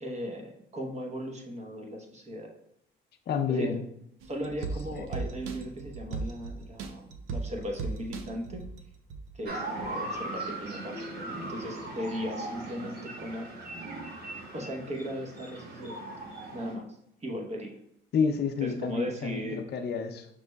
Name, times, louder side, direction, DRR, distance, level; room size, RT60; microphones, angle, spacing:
voice 1, 0.0-2.5 3.5-3.7 4.3-8.6 9.3-13.5 14.5-16.1 16.5-16.9 17.2-17.8 18.6-19.6, equal, 35° right, 1 dB, 0.9 m, -37 dB
voice 2, 3.3-3.8 4.9-5.1 18.1-20.3, left 6 dB, 55° left, 6 dB, 0.5 m, -29 dB
sound 1, 4.2-9.4 9.8-9.9, right 4 dB, 90° right, 0.5 m, -38 dB
sound 2, 9.5-16.7, right 2 dB, 55° right, 1.1 m, -39 dB
5.8 x 3.1 x 2.2 m, 0.75 s
cardioid pair, 90°, 20 cm